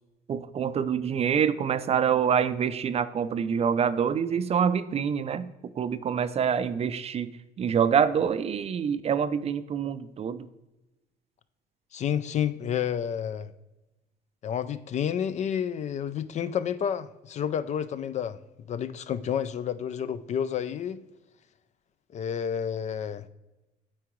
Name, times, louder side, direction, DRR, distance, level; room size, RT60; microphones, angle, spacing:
voice 1, 0.3-5.5 5.8-7.3 7.6-10.5, right 7 dB, 35° right, 0.4 m, -26 dB
voice 2, 11.9-13.5 14.4-18.4 18.7-21.0 22.1-23.2, left 8 dB, 45° left, 0.4 m, -30 dB
8.6 x 4.7 x 3.1 m
cardioid pair, 110°, 17 cm